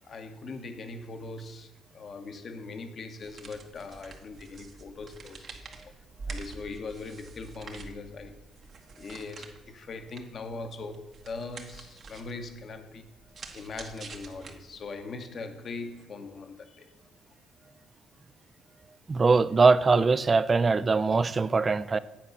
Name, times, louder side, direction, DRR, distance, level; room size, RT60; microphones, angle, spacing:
voice 1, 0.0-5.9 6.2-8.5 9.0-13.1 13.5-16.9, left 3 dB, 50° left, 1.0 m, -41 dB
sound 1, 3.1-15.0, right 4 dB, 50° right, 1.3 m, -47 dB
voice 2, 19.1-22.0, right 4 dB, 35° right, 0.4 m, -22 dB
8.8 x 4.7 x 6.5 m
cardioid pair, 80°, 0 cm